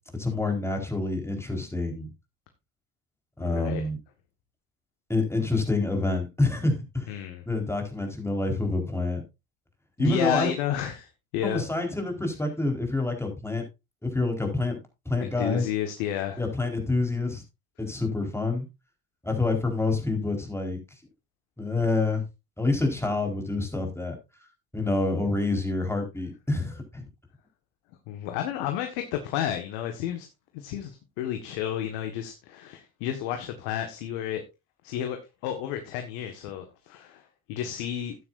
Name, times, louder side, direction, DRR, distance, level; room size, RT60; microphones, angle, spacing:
voice 1, 0.1-2.1 3.4-4.0 5.1-7.1 7.5-9.2 10.0-10.5 11.4-13.6 14.0-15.7 16.4-17.4 17.8-18.7 19.2-20.8 21.6-22.2 22.6-24.2 24.7-27.0, left 2 dB, 5° left, 3 dB, 4.3 m, -27 dB
voice 2, 3.4-3.9 7.1-7.4 10.0-11.6 15.2-16.4 28.1-30.3 30.5-34.4 34.8-38.2, left 10 dB, 75° left, 5 dB, 1.7 m, -31 dB
13.0 x 9.3 x 2.6 m, 0.24 s
hypercardioid pair, 70°, 42 cm